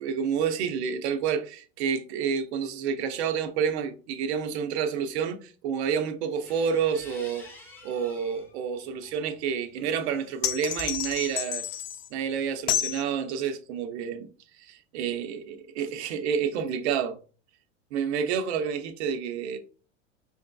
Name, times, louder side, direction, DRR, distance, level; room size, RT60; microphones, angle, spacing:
voice 1, 0.0-7.5 7.8-11.6 12.1-14.3 14.6-17.2 17.9-19.6, right 7 dB, 60° right, 0.8 m, -29 dB
sound 1, 6.2-8.5 9.0-11.8, left 3 dB, 5° left, 1.1 m, -50 dB
sound 2, 10.4-12.1 12.7-13.0, left 11 dB, 50° left, 0.5 m, -29 dB
5.1 x 2.7 x 2.3 m
hypercardioid pair, 90°, 37 cm